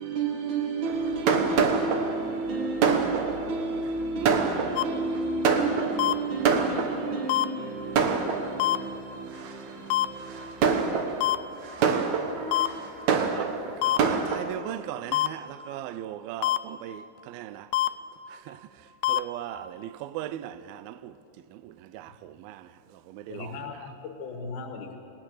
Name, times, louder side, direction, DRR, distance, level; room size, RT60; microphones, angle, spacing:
voice 1, 0.0-11.3 11.8-13.2, right 4 dB, 45° right, 1.6 m, -32 dB
Fireworks, 0.9-7.3 8.0-8.9 9.4-9.7 10.3-14.4, right 5 dB, 60° right, 1.9 m, -26 dB
sound 1, 4.8-4.9 6.0-6.1 7.3-7.5 8.6-8.8 9.9-10.1 11.2-11.4 12.5-12.7 13.8-14.0 15.1-15.3 16.4-16.6 17.7-17.9 19.0-19.2, left 14 dB, 80° left, 2.7 m, -23 dB
voice 2, 13.3-17.7 18.3-21.2 21.5-23.9, right 12 dB, 85° right, 2.2 m, -39 dB
voice 3, 23.3-25.0, left 4 dB, 65° left, 3.3 m, -38 dB
28.0 x 19.0 x 6.5 m
omnidirectional pair, 5.0 m